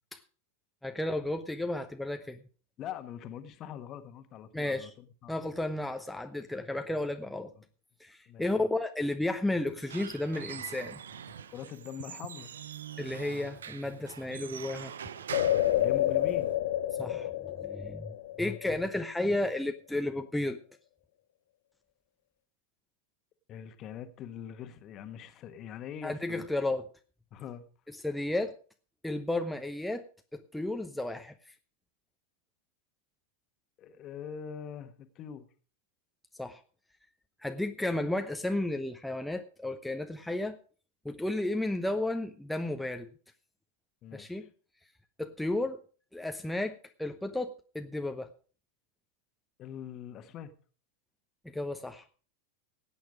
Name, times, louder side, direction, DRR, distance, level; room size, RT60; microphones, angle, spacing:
voice 1, 0.8-2.4 4.5-4.9 5.3-7.5 8.0-11.0 13.0-14.9 17.0-20.6 26.0-26.8 27.9-28.5 29.0-30.0 30.3-31.3 36.4-36.6 37.4-40.6 41.0-43.1 44.1-44.5 45.2-45.8 46.1-48.3 51.5-52.0, left 1 dB, 5° left, 6 dB, 0.8 m, -33 dB
voice 2, 2.8-5.3 8.3-8.7 11.5-12.5 15.8-16.5 23.5-26.5 27.3-27.6 33.8-35.5 44.0-44.5 49.6-50.5, left 9 dB, 35° left, 10 dB, 1.4 m, -43 dB
Squeak / Wood, 9.6-16.5, right 8 dB, 65° right, 0.7 m, -44 dB
sound 1, 15.3-19.0 19.4-19.5, left 13 dB, 55° left, 0.6 m, -29 dB
17.0 x 9.0 x 5.0 m, 0.40 s
figure-of-eight pair, 90°, 0 cm